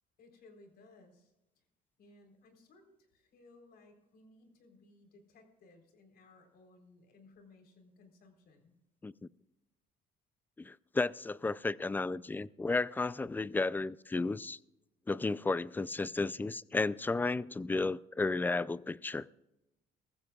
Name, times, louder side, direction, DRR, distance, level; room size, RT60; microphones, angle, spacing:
voice 1, 0.2-1.7 2.0-8.8, left 2 dB, 65° left, 3.8 m, -61 dB
voice 2, 10.6-14.6 15.1-19.3, left 3 dB, 10° left, 0.3 m, -33 dB
21.5 x 14.5 x 2.4 m
cardioid pair, 110°, 17 cm